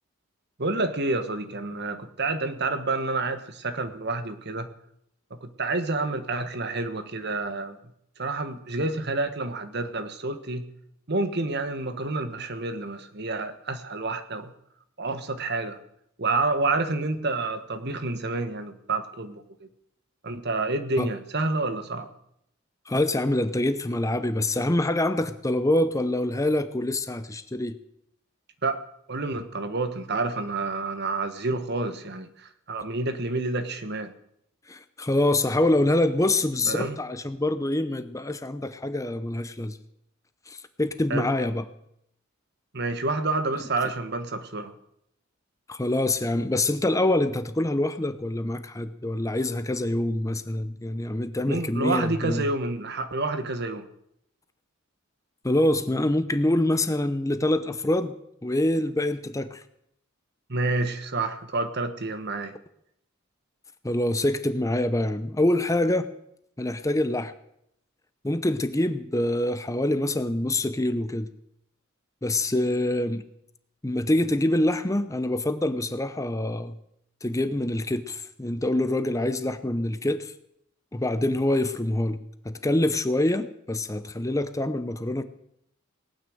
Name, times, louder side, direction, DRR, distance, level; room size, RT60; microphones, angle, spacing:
voice 1, 0.6-4.7 5.3-7.8 8.2-10.7 11.1-14.5 15.0-15.8 16.2-19.7 20.2-22.1 28.6-28.8 29.1-34.1 36.7-36.9 41.1-41.3 42.7-44.7 51.5-53.9 60.5-62.5, right 3 dB, 55° right, 10 dB, 1.4 m, -29 dB
voice 2, 22.9-27.8 34.7-39.8 40.5-41.6 45.7-52.5 55.4-58.1 58.4-59.6 63.8-66.1 66.6-67.3 68.2-71.3 72.2-73.2 73.8-76.7 77.2-80.3 80.9-82.2 82.4-85.2, left 1 dB, 15° left, 11 dB, 0.7 m, -25 dB
18.5 x 9.5 x 7.8 m, 0.76 s
head